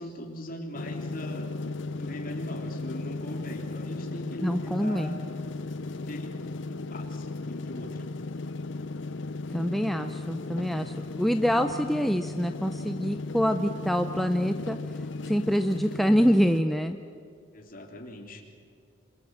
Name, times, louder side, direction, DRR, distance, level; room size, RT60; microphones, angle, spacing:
voice 1, 0.0-1.5 1.9-5.2 5.9-6.3 6.5-8.0 17.5-18.4, equal, 40° left, 2 dB, 3.1 m, -40 dB
sound 1, 0.7-16.6, left 3 dB, 60° left, 0.6 m, -36 dB
voice 2, 4.4-5.2 9.5-14.8 15.3-17.0, equal, ahead, 6 dB, 0.6 m, -25 dB
27.0 x 25.5 x 7.5 m, 2.3 s
head